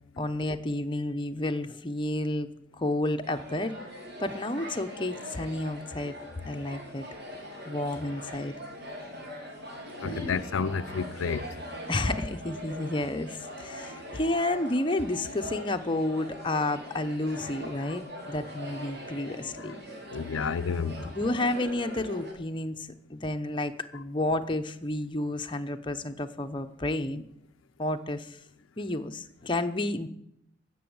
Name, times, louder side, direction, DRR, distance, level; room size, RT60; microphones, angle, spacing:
voice 1, 0.2-3.8 4.2-6.1 6.4-7.0 7.6-8.5 10.0-10.3 11.9-19.8 20.9-27.2 27.8-28.4 28.8-30.1, left 2 dB, 25° left, 0.8 m, -31 dB
sound 1, 3.2-22.3, equal, 60° right, 3.6 m, -42 dB
voice 2, 10.0-11.6 17.8-17.9 19.6-19.8 20.1-21.1, left 5 dB, 85° left, 0.5 m, -31 dB
15.0 x 6.3 x 8.6 m
head